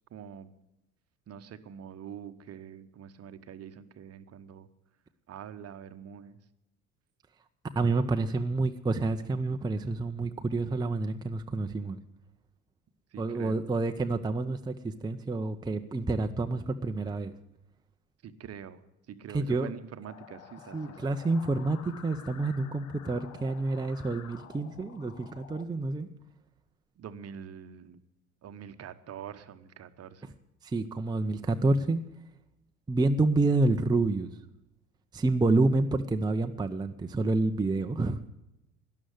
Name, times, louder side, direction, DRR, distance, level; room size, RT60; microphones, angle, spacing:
voice 1, 0.1-0.5 1.3-4.7 5.3-6.4 13.1-13.6 18.2-21.1 27.0-28.0 28.4-30.2, right 8 dB, 35° right, 11 dB, 1.1 m, -45 dB
voice 2, 7.8-12.0 13.2-17.3 19.3-19.7 20.7-26.1 30.6-32.0 32.9-34.3 35.1-38.2, right 2 dB, 10° right, 6 dB, 0.7 m, -28 dB
sound 1, 20.1-25.6, left 8 dB, 75° left, 1.1 m, -50 dB
12.5 x 11.0 x 7.8 m, 0.91 s
figure-of-eight pair, 65°, 42 cm